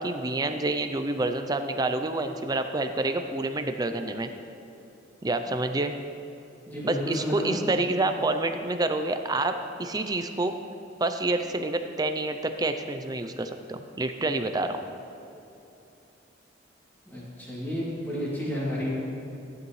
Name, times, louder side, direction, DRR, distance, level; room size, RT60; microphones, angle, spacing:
voice 1, 0.0-4.3 5.2-5.9 6.8-10.5 11.0-14.8, right 2 dB, 20° right, 7 dB, 0.5 m, -28 dB
voice 2, 6.7-7.6 17.1-18.9, equal, 10° left, -9 dB, 2.8 m, -31 dB
15.0 x 11.0 x 3.2 m, 2.9 s
head